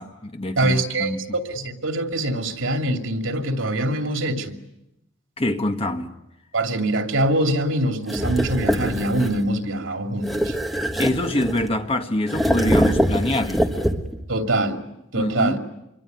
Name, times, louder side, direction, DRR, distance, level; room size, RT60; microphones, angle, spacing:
voice 1, 0.0-1.2 5.4-6.1 11.0-13.7 15.1-15.6, left 1 dB, 30° left, 1.6 m, -25 dB
voice 2, 0.6-4.6 6.5-10.6 14.3-14.8 15.1-15.6, right 1 dB, 90° right, 2.7 m, -24 dB
sound 1, 8.1-9.4 10.2-11.8 12.3-14.3, equal, ahead, 1.5 m, -23 dB
26.0 x 23.5 x 9.4 m
head